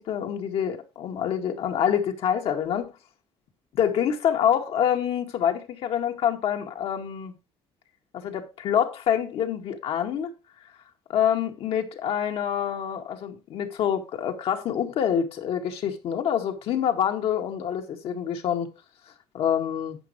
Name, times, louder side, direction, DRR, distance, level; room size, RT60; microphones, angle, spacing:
voice 1, 0.0-2.9 3.7-7.3 8.1-10.3 11.1-18.7 19.3-20.0, left 9 dB, 65° left, 1.9 m, -26 dB
11.0 x 8.7 x 3.1 m
cardioid pair, 135°, 11 cm